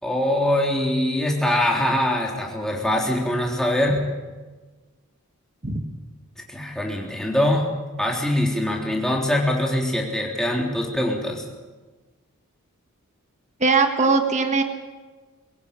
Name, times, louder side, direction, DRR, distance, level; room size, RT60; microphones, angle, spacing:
voice 1, 0.0-4.0 6.5-7.7 8.0-11.5, left 1 dB, ahead, -1 dB, 3.5 m, -23 dB
voice 2, 13.6-14.6, right 4 dB, 30° right, 5 dB, 1.7 m, -20 dB
22.5 x 17.0 x 8.9 m, 1.3 s
head